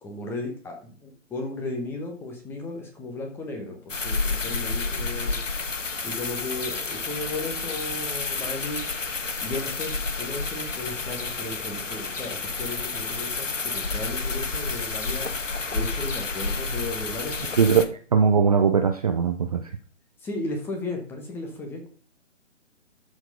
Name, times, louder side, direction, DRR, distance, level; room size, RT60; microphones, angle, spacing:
voice 1, 0.0-5.4 6.0-8.8 9.4-15.3 15.7-17.6 20.2-21.9, left 2 dB, 5° left, 3 dB, 1.1 m, -35 dB
sound 1, 3.9-17.8, left 4 dB, 75° left, 1.4 m, -30 dB
voice 2, 18.1-19.6, right 6 dB, 30° right, 6 dB, 0.6 m, -20 dB
13.0 x 4.6 x 5.2 m, 0.42 s
figure-of-eight pair, 140°, 38 cm